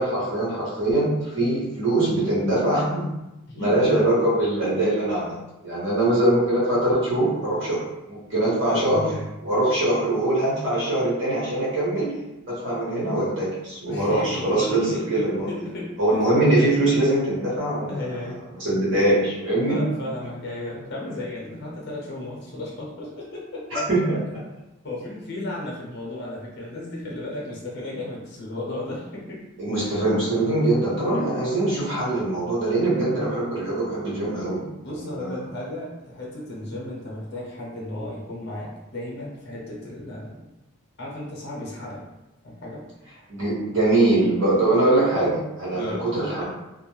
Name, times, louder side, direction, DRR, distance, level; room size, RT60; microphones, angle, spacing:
voice 1, 0.0-3.1 3.5-5.4 5.6-7.8 8.1-9.1 9.4-15.5 16.0-18.1 18.6-19.8 23.7-24.4 29.6-35.4 43.3-46.4, right 1 dB, 60° right, -7 dB, 1.1 m, -22 dB
voice 2, 8.6-9.3 13.9-16.3 17.9-18.4 19.6-23.8 24.8-29.4 29.7-29.9 31.2-31.4 34.5-40.4 41.0-42.0 42.4-42.8 45.7-46.0 46.4-46.5, left 1 dB, 50° left, -4 dB, 0.8 m, -34 dB
2.4 x 2.1 x 3.1 m, 0.98 s
head